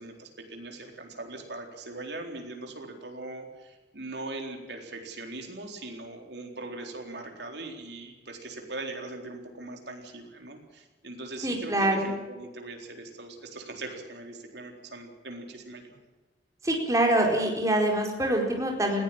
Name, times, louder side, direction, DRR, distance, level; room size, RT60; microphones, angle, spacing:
voice 1, 0.0-16.0, right 2 dB, 75° right, 3 dB, 4.0 m, -40 dB
voice 2, 11.4-12.1 16.6-19.0, right 1 dB, 20° right, 1 dB, 4.4 m, -25 dB
20.0 x 16.5 x 8.9 m, 1.2 s
head